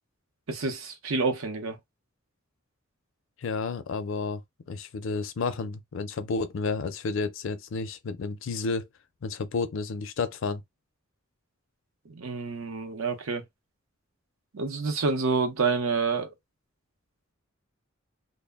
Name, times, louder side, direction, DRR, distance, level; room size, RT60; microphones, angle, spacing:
voice 1, 0.5-1.8 12.1-13.4 14.5-16.3, right 4 dB, 80° right, 0.7 m, -28 dB
voice 2, 3.4-4.4 4.7-8.9 9.2-10.6, left 4 dB, 65° left, 0.4 m, -31 dB
2.1 x 2.0 x 3.4 m
head